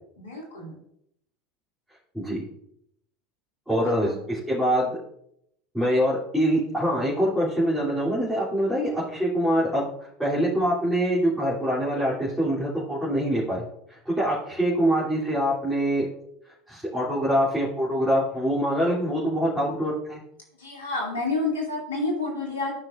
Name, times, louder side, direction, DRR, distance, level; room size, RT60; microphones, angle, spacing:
voice 1, 0.2-0.8 3.8-4.2 20.5-22.7, left 3 dB, 80° left, -1 dB, 2.6 m, -29 dB
voice 2, 2.1-2.5 3.7-4.9 5.7-9.9 10.2-13.6 13.9-16.1 16.7-20.2, equal, 5° right, -9 dB, 3.1 m, -24 dB
13.0 x 5.7 x 2.5 m, 0.73 s
hypercardioid pair, 75°, 0 cm